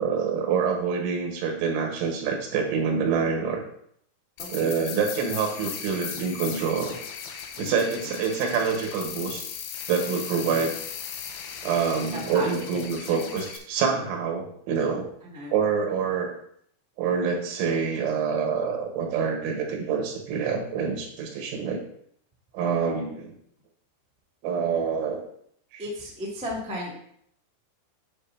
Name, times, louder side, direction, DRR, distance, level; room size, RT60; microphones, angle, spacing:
voice 1, 0.0-3.6 4.5-7.0 7.6-9.5 9.9-10.7 11.6-15.1 15.5-16.3 17.0-21.8 22.5-23.3 24.4-25.2 25.7-25.8, right 6 dB, 90° right, 2 dB, 3.8 m, -26 dB
sound 1, 4.4-13.6, left 8 dB, 90° left, 3.4 m, -37 dB
voice 2, 4.4-4.8 7.5-8.1 10.4-10.7 11.9-13.4 15.2-15.6 25.8-26.9, left 1 dB, 5° right, -4 dB, 0.5 m, -36 dB
9.9 x 6.3 x 2.8 m, 0.66 s
omnidirectional pair, 5.3 m